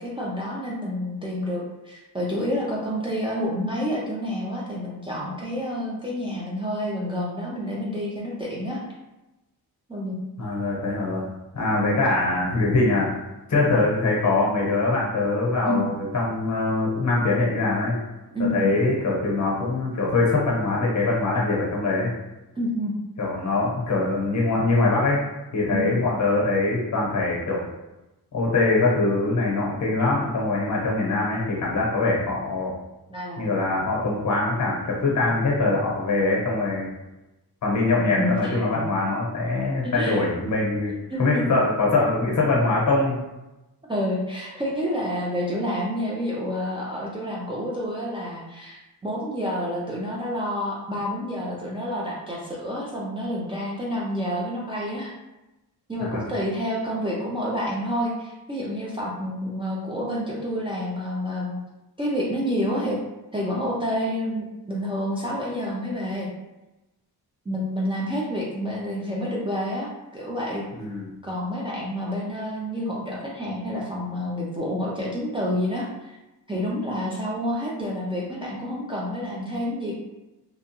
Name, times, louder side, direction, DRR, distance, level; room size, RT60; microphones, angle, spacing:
voice 1, 0.0-8.8 9.9-10.2 11.7-12.0 15.7-15.9 18.3-18.7 22.6-23.0 25.7-26.0 33.1-33.4 38.1-38.6 39.8-40.3 41.1-41.4 43.9-55.1 55.9-61.6 62.0-63.0 63.3-66.3 67.5-70.6 71.2-76.2 76.5-80.0, equal, 15° right, -5 dB, 0.4 m, -29 dB
voice 2, 10.4-11.2 11.5-13.1 13.5-18.0 18.5-22.1 23.2-25.2 25.5-27.6 28.3-32.7 33.4-36.9 37.6-40.9 41.2-43.2 56.0-56.2 70.7-71.1, left 2 dB, 45° left, -3 dB, 0.9 m, -23 dB
2.8 x 2.2 x 2.9 m, 1.0 s
wide cardioid pair, 130°, 39 cm